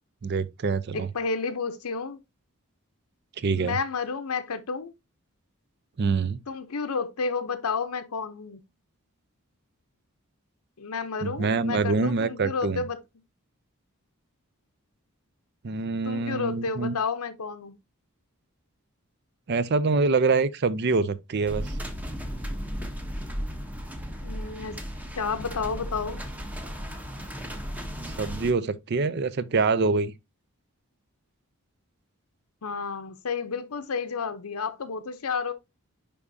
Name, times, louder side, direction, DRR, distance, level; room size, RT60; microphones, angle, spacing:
voice 1, 0.2-1.1 3.4-3.8 6.0-6.4 11.2-12.8 15.6-16.9 19.5-21.7 28.2-30.1, right 4 dB, 50° right, 0.5 m, -25 dB
voice 2, 0.9-2.2 3.5-4.9 6.5-8.6 10.8-13.0 16.0-17.7 24.2-24.8 25.2-26.2 32.6-35.5, left 5 dB, 80° left, 0.7 m, -31 dB
sound 1, 21.5-28.5, equal, 5° right, 0.8 m, -35 dB
10.0 x 3.6 x 2.6 m
head